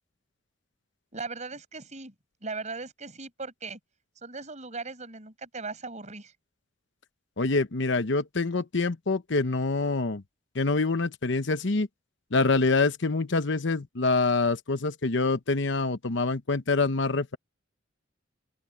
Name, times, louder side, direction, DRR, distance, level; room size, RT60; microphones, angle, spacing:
voice 1, 1.1-2.1 2.4-3.8 4.2-6.3, right 3 dB, 40° right, 6.0 m, -38 dB
voice 2, 7.4-10.2 10.5-11.9 12.3-17.4, left 3 dB, 65° left, 1.0 m, -26 dB
open air
head